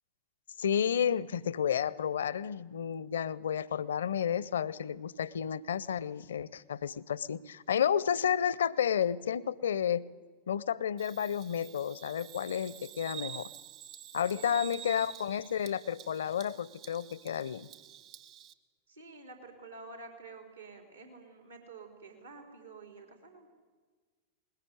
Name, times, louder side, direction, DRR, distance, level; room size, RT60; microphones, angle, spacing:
voice 1, 0.6-10.0 10.5-13.5 14.1-17.7, left 8 dB, 65° left, 22 dB, 0.6 m, -31 dB
Bird vocalization bird call bird song, 11.0-18.5, right 10 dB, 40° right, 1.3 m, -48 dB
voice 2, 14.3-15.0 18.9-23.5, right 3 dB, 80° right, 4 dB, 3.9 m, -50 dB
21.0 x 20.0 x 9.6 m, 1.4 s
figure-of-eight pair, 90°, 0 cm